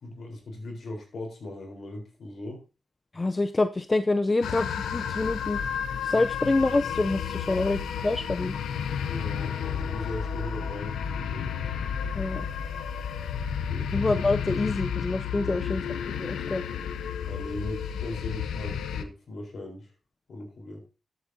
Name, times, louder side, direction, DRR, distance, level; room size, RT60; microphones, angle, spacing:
voice 1, 0.0-2.6 9.0-11.5 13.7-14.0 15.4-15.7 17.3-19.9 20.3-20.8, left 1 dB, 65° left, 2 dB, 4.0 m, -39 dB
voice 2, 3.1-5.6 6.0-8.5 12.2-12.4 13.9-15.8 16.2-16.6, left 2 dB, 30° left, 10 dB, 0.5 m, -26 dB
sound 1, 4.4-19.1, left 7 dB, 90° left, 0.6 m, -32 dB
13.5 x 8.0 x 2.7 m, 0.31 s
cardioid pair, 55°, 0 cm